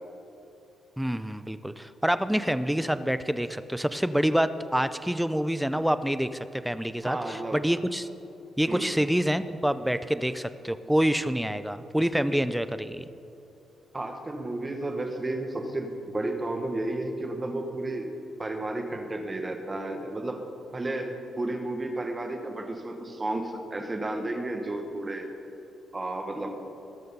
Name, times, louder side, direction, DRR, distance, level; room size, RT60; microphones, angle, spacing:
voice 1, 1.0-6.3 6.6-8.1 8.6-13.0, equal, 5° right, 13 dB, 0.4 m, -27 dB
voice 2, 7.0-7.6 8.7-9.0 13.9-18.1 18.4-20.4 20.7-25.3 25.9-26.5, right 2 dB, 20° right, 5 dB, 1.1 m, -32 dB
20.0 x 6.7 x 5.4 m, 2.8 s
cardioid pair, 140°, 0 cm